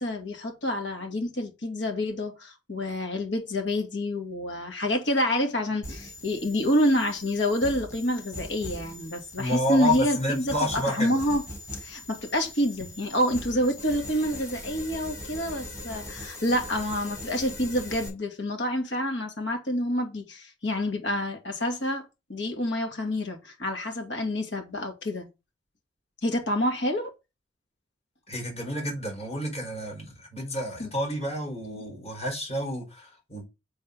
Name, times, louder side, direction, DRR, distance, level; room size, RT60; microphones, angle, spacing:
voice 1, 0.0-11.4 11.8-25.3 26.2-27.1 30.8-30.9 31.7-31.8, left 1 dB, 65° left, 2.5 m, -28 dB
sound 1, 5.8-18.1, left 1 dB, 20° left, 4.4 m, -41 dB
voice 2, 9.4-11.2 28.3-33.4, left 1 dB, 35° left, 4.8 m, -30 dB
7.9 x 4.3 x 5.4 m
head